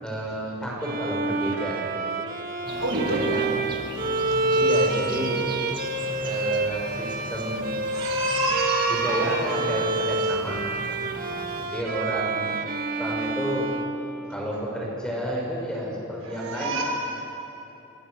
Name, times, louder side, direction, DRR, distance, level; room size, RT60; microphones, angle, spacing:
voice 1, 0.0-2.2 2.9-3.5 4.5-5.5 6.2-7.7 8.9-10.7 11.6-12.5 13.0-13.8 14.3-16.8, equal, 5° left, -4 dB, 6.4 m, -31 dB
Bowed string instrument, 0.8-14.7, right 2 dB, 45° right, 1.6 m, -28 dB
sound 1, 2.6-11.7, right 1 dB, 20° right, 1.9 m, -39 dB
voice 2, 2.8-3.3 7.9-9.4 16.2-16.8, right 2 dB, 85° right, -2 dB, 5.9 m, -27 dB
27.5 x 26.0 x 6.8 m, 3.0 s
head